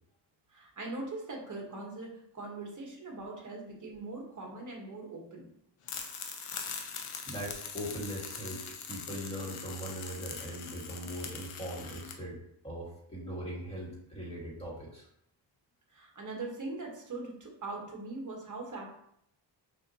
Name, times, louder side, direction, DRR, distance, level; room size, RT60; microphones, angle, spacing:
voice 1, 0.5-5.5 15.9-18.9, right 2 dB, 40° right, 0 dB, 1.2 m, -41 dB
sound 1, 5.8-12.1, left 6 dB, 85° left, 0.7 m, -42 dB
voice 2, 7.3-8.6 8.9-12.4 12.6-15.1, equal, 10° left, -5 dB, 1.6 m, -40 dB
6.0 x 2.6 x 2.7 m, 0.71 s
wide cardioid pair, 145°, 49 cm